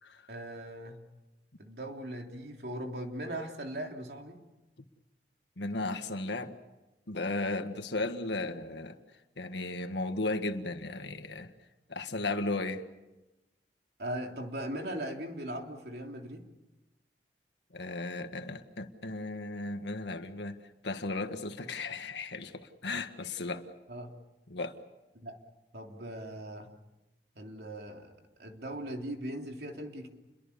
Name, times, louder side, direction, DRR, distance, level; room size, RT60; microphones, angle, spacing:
voice 1, 0.3-1.0 1.6-4.4 14.0-16.4 23.9-24.1 25.1-25.4 25.7-26.7 27.3-30.1, right 1 dB, 65° right, 2 dB, 3.3 m, -39 dB
voice 2, 5.6-6.5 7.1-9.0 9.4-11.5 11.9-12.8 17.7-23.7 24.5-24.8, left 2 dB, 85° left, 7 dB, 1.7 m, -35 dB
29.5 x 23.0 x 7.0 m, 1.0 s
head